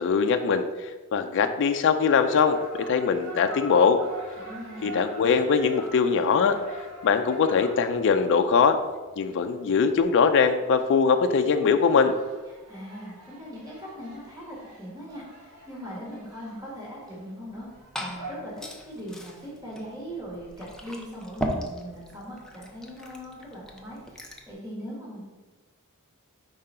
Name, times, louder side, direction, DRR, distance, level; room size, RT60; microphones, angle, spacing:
voice 1, 0.0-4.0 4.8-6.6 7.0-8.8 9.2-12.1, left 5 dB, 55° left, 7 dB, 0.4 m, -22 dB
sound 1, 2.1-18.4, right 2 dB, 85° right, 1.2 m, -45 dB
voice 2, 4.4-4.9 12.7-17.7 18.0-25.2, equal, 15° right, -5 dB, 1.5 m, -40 dB
Liquid, 17.4-24.5, equal, 5° left, 0.6 m, -38 dB
4.7 x 3.7 x 5.5 m, 1.2 s
head